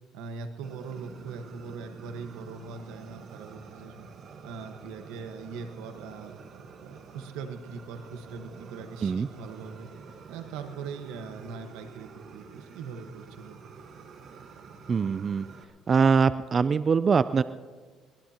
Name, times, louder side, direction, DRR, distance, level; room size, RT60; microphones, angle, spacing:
voice 1, 0.1-4.1 4.4-6.3 6.8-9.9 10.3-13.6, right 5 dB, 90° right, 7 dB, 1.3 m, -41 dB
Fire, 0.6-15.6, right 5 dB, 50° right, 1.4 m, -48 dB
voice 2, 14.9-15.5 15.9-17.4, right 5 dB, 35° right, 14 dB, 0.4 m, -23 dB
22.0 x 19.0 x 2.9 m, 1.5 s
cardioid pair, 115°, 0 cm